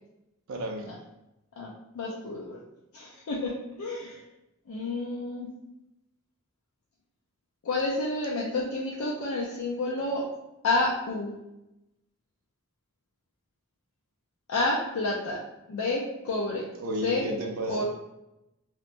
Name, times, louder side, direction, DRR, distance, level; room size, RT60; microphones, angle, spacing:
voice 1, 0.5-0.9 16.8-17.8, right 1 dB, 85° right, 2 dB, 0.5 m, -33 dB
voice 2, 1.6-2.6 2.9-4.2 4.7-5.5 7.6-10.2 10.6-11.3 14.5-15.4 15.7-16.6 17.0-17.3 17.7-17.8, left 2 dB, 85° left, -4 dB, 0.4 m, -29 dB
2.8 x 2.1 x 2.5 m, 0.92 s
head